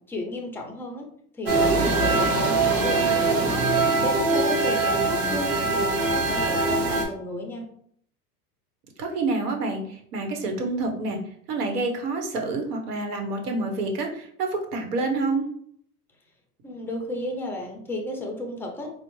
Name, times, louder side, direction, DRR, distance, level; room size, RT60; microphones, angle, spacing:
voice 1, 0.1-1.1 1.3-3.7 4.0-7.7 16.6-18.9, left 2 dB, 5° left, 1 dB, 0.4 m, -33 dB
sound 1, 1.5-7.0, right 3 dB, 30° right, 1.1 m, -22 dB
voice 2, 9.0-11.2 11.5-15.5, right 3 dB, 75° right, 3 dB, 1.1 m, -28 dB
4.1 x 2.0 x 3.0 m, 0.63 s
hypercardioid pair, 110°, 47 cm